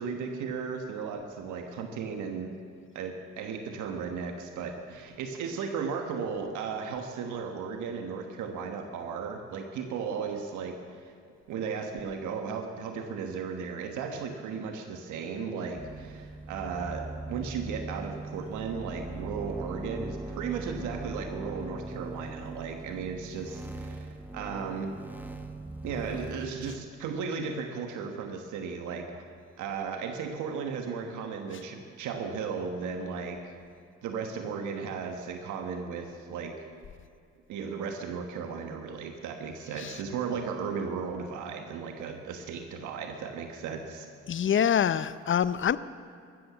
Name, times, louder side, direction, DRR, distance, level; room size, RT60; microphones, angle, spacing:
voice 1, 0.0-2.5 2.9-10.8 11.0-11.1 11.5-24.9 25.8-29.2 29.6-33.5 34.0-36.5 37.5-44.1, right 5 dB, 85° right, 4 dB, 1.4 m, -35 dB
sound 1, 15.7-26.8, right 2 dB, 5° right, 1.4 m, -40 dB
voice 2, 44.3-45.8, left 8 dB, 45° left, 16 dB, 0.6 m, -25 dB
14.5 x 13.0 x 7.3 m, 2.4 s
cardioid pair, 80°, 29 cm